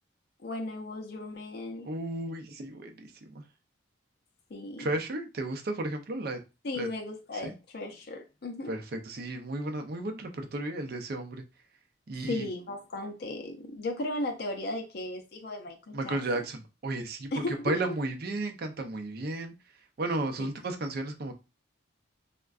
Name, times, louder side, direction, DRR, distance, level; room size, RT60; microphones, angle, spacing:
voice 1, 0.4-1.9 4.5-4.9 6.6-8.8 12.3-16.2 17.3-17.8, left 2 dB, 55° left, 0.5 m, -36 dB
voice 2, 1.8-3.4 4.8-6.4 6.7-6.9 7.4-7.5 8.7-11.4 12.1-12.5 15.9-19.5 20.0-21.3, right 2 dB, 50° right, 0.5 m, -33 dB
3.5 x 2.1 x 2.3 m
head